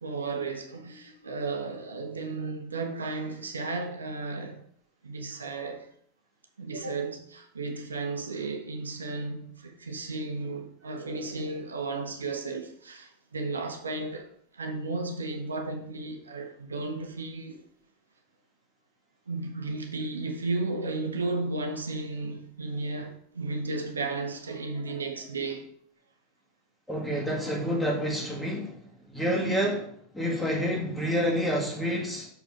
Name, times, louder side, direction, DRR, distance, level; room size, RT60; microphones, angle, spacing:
voice 1, 0.0-4.6 5.0-5.9 6.6-17.6 19.3-25.7, right 3 dB, 80° right, 0.9 m, -34 dB
voice 2, 26.9-32.3, equal, 5° left, 2.0 m, -28 dB
6.4 x 5.0 x 3.7 m
figure-of-eight pair, 85°, 0 cm